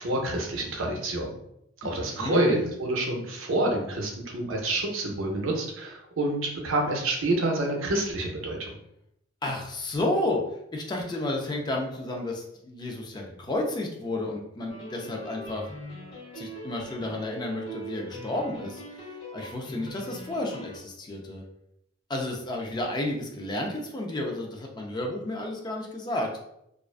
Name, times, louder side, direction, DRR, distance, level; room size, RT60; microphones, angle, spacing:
voice 1, 0.0-1.3 1.8-8.7, right 1 dB, 80° right, 1 dB, 0.6 m, -28 dB
voice 2, 1.8-2.7 9.4-10.4 10.7-15.7 16.3-21.4 22.1-26.4, left 1 dB, 20° left, 1 dB, 0.3 m, -32 dB
Keyboard Melody, 14.7-20.8, right 1 dB, 65° left, 0.8 m, -41 dB
2.4 x 2.1 x 2.3 m, 0.78 s
head